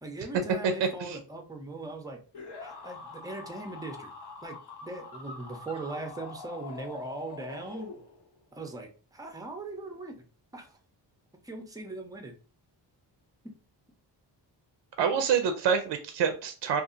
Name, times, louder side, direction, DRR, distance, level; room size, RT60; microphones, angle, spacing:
voice 1, 0.0-2.2 2.6-4.1 4.4-7.9 8.5-10.2 10.5-10.8 11.4-12.3 13.4-13.5, right 2 dB, 10° right, 4 dB, 0.5 m, -40 dB
voice 2, 0.8-1.2 15.0-16.8, right 7 dB, 70° right, 7 dB, 0.5 m, -27 dB
sound 1, 2.3-8.4, left 4 dB, 65° left, 0.9 m, -44 dB
2.6 x 2.4 x 2.4 m, 0.37 s
cardioid pair, 85°, 44 cm